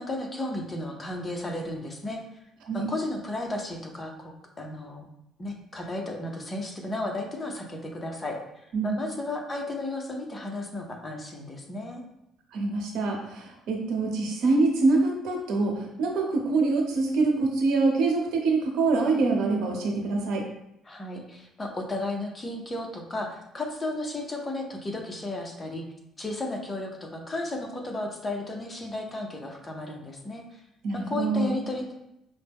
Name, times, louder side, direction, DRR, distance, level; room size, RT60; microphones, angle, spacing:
voice 1, 0.0-2.2 2.7-5.0 5.4-8.4 8.8-12.0 20.8-25.9 26.2-30.6 30.9-31.9, left 2 dB, 20° left, 2 dB, 0.7 m, -34 dB
voice 2, 12.5-20.4 30.8-31.6, right 3 dB, 80° right, 1 dB, 0.9 m, -25 dB
5.4 x 2.1 x 3.5 m, 0.81 s
cardioid pair, 120°, 0 cm